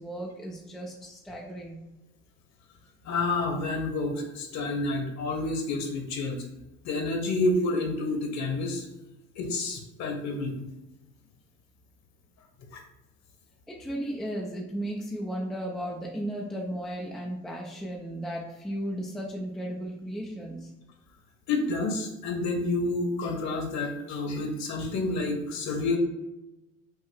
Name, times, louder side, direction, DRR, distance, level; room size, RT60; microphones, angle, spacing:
voice 1, 0.0-1.9 13.7-20.7, right 1 dB, ahead, -2 dB, 0.4 m, -35 dB
voice 2, 3.0-6.4 6.8-8.9 9.3-10.5 12.7-12.8 21.5-26.0, left 2 dB, 40° left, 2 dB, 1.1 m, -29 dB
5.7 x 2.6 x 3.3 m, 1.0 s
figure-of-eight pair, 70°, 43 cm